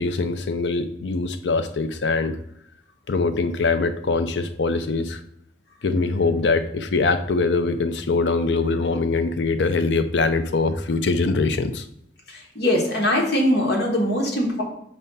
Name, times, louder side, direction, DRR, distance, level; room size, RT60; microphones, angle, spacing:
voice 1, 0.0-2.4 3.1-5.2 5.8-11.9, left 3 dB, 85° left, 9 dB, 0.5 m, -23 dB
voice 2, 12.5-14.6, left 1 dB, 65° left, -1 dB, 1.5 m, -21 dB
5.4 x 3.4 x 5.5 m, 0.71 s
head